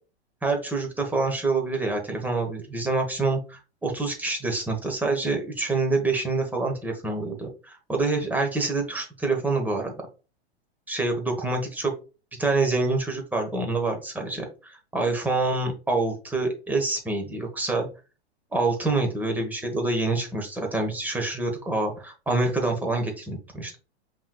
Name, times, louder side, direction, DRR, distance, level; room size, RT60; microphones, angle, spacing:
voice 1, 0.4-9.9 10.9-11.9 12.4-17.9 18.5-23.8, right 3 dB, 5° right, 2 dB, 1.1 m, -26 dB
5.4 x 3.1 x 2.3 m, 0.33 s
hypercardioid pair, 110°, 33 cm